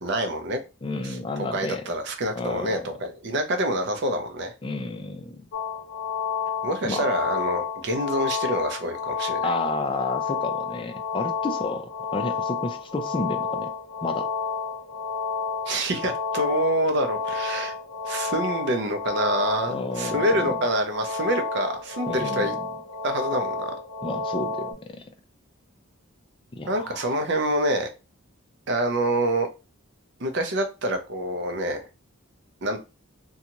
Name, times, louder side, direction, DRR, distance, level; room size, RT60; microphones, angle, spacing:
voice 1, 0.0-0.6 1.0-1.2 1.5-4.5 6.6-9.5 15.7-17.7 18.1-22.6 23.0-23.7 26.7-27.9 28.7-29.5 30.2-31.8 32.6-32.8, right 1 dB, 55° right, 5 dB, 0.5 m, -26 dB
voice 2, 0.8-1.8 2.4-2.8 4.6-5.5 6.8-7.1 9.4-13.7 14.0-14.3 19.7-20.6 22.1-22.6 24.0-25.0 26.5-27.2, left 2 dB, 25° left, 6 dB, 0.3 m, -31 dB
sound 1, 5.5-24.7, left 5 dB, 80° left, 0.7 m, -30 dB
2.6 x 2.3 x 2.9 m, 0.29 s
head